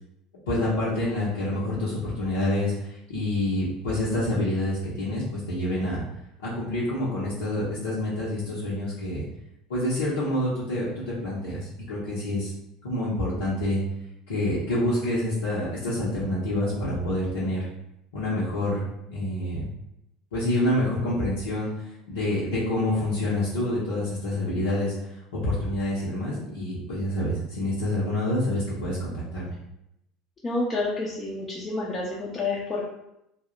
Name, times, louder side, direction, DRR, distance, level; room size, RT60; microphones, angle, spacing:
voice 1, 0.5-6.0 6.4-9.2 9.7-12.5 12.8-13.8 14.3-17.6 18.1-19.7 20.3-29.5, left 1 dB, 70° left, -10 dB, 0.7 m, -27 dB
voice 2, 30.4-32.8, left 2 dB, 25° left, -5 dB, 0.6 m, -29 dB
2.7 x 2.1 x 3.7 m, 0.83 s
figure-of-eight pair, 65°, 0 cm